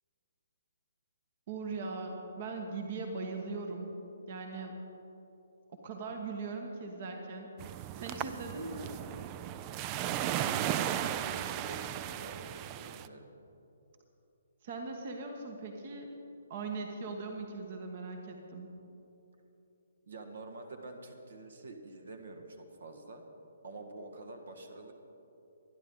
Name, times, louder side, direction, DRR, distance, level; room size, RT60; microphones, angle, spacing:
voice 1, 1.5-3.9 4.3-4.8 5.8-7.5 8.0-8.9 14.6-16.1 16.5-18.7, right 3 dB, 40° right, 3 dB, 1.4 m, -40 dB
sound 1, 7.6-13.1, right 11 dB, 25° right, 0.4 m, -36 dB
voice 2, 10.3-13.3 20.1-23.2 23.6-24.9, right 2 dB, 60° right, 5 dB, 1.6 m, -47 dB
24.5 x 10.5 x 3.8 m, 3.0 s
figure-of-eight pair, 130°, 0 cm